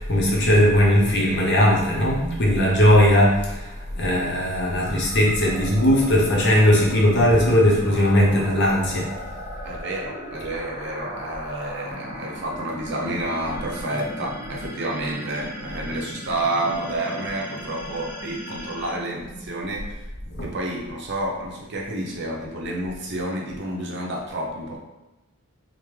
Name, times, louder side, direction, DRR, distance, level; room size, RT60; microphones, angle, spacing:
voice 1, 0.0-9.1 20.3-20.5, equal, 55° left, -3 dB, 0.8 m, -18 dB
sound 1, 4.8-19.9, equal, 15° right, 0.8 m, -38 dB
voice 2, 9.6-20.0 20.4-24.8, right 1 dB, 55° right, -1 dB, 0.7 m, -29 dB
3.5 x 2.1 x 3.1 m, 1.0 s
head